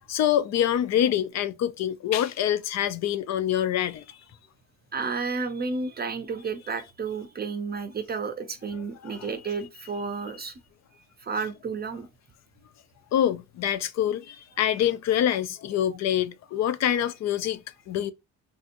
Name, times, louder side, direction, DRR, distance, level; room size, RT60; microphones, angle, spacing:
voice 1, 0.1-4.0 9.0-9.3 13.1-18.1, left 10 dB, 60° left, 0.5 m, -26 dB
voice 2, 4.9-10.6 11.2-12.1, right 4 dB, 35° right, 0.5 m, -31 dB
3.6 x 2.7 x 2.5 m
cardioid pair, 90°, 30 cm